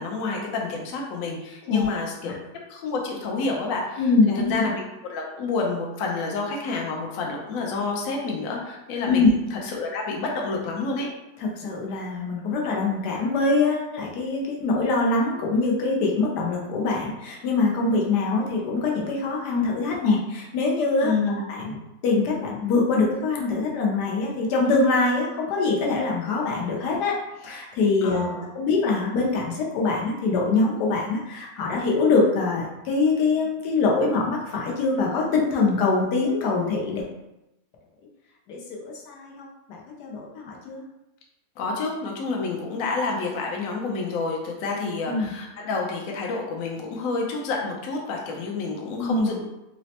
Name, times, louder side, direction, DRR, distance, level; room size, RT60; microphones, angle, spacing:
voice 1, 0.0-2.4 2.7-4.0 4.5-11.1 21.0-21.4 28.0-28.5 41.6-49.4, left 3 dB, 65° left, 0 dB, 1.0 m, -29 dB
voice 2, 4.0-4.6 9.1-9.3 11.4-21.1 21.5-21.8 22.0-37.0 38.5-40.8 45.1-45.3 49.0-49.4, left 3 dB, 85° left, -2 dB, 1.3 m, -24 dB
4.0 x 2.1 x 2.8 m, 0.93 s
omnidirectional pair, 1.7 m